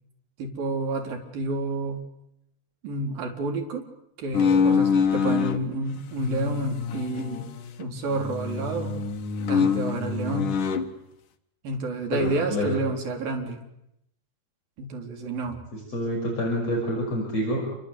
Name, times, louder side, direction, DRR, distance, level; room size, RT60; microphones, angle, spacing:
voice 1, 0.4-2.1 2.8-3.9 4.2-7.5 7.8-9.0 9.5-10.5 11.6-13.7 14.8-15.6, right 2 dB, 55° right, 2 dB, 5.5 m, -29 dB
sound 1, 4.3-5.6 6.1-7.9 8.1-10.9, left 6 dB, 55° left, 2.8 m, -25 dB
voice 2, 12.1-12.8 15.7-17.6, equal, 35° left, -1 dB, 6.8 m, -27 dB
29.0 x 25.0 x 8.3 m, 0.79 s
omnidirectional pair, 5.0 m